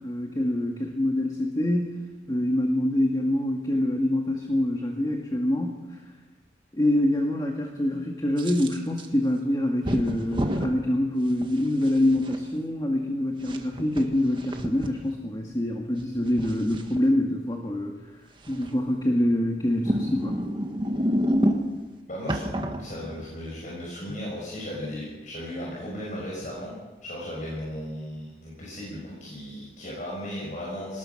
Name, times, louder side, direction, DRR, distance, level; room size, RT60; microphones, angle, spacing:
voice 1, 0.0-5.8 6.7-18.0 18.5-20.4, left 1 dB, 20° left, 1 dB, 1.9 m, -25 dB
sound 1, 8.4-9.1 9.8-10.7 11.4-12.4 13.4-14.9 16.0-17.0 18.5-18.9 19.7-21.8 22.3-23.4, equal, 25° right, 1.7 m, -28 dB
voice 2, 22.1-31.0, equal, 45° left, -5 dB, 6.2 m, -36 dB
24.5 x 20.0 x 6.0 m, 1.2 s
head